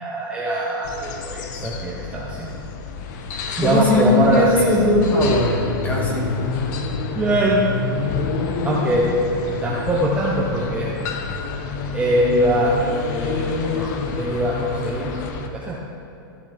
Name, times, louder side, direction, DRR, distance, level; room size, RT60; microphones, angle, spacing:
voice 1, 0.0-2.5 3.6-4.7 7.1-7.6 8.6-9.1 9.6-10.9 11.9-15.2 15.5-15.8, right 1 dB, 10° right, -4 dB, 0.9 m, -22 dB
sound 1, 0.8-15.5, left 4 dB, 50° left, 0.9 m, -28 dB
voice 2, 3.6-6.3, left 1 dB, 15° left, -3 dB, 2.2 m, -19 dB
14.0 x 7.0 x 3.5 m, 2.9 s
hypercardioid pair, 140°, 12 cm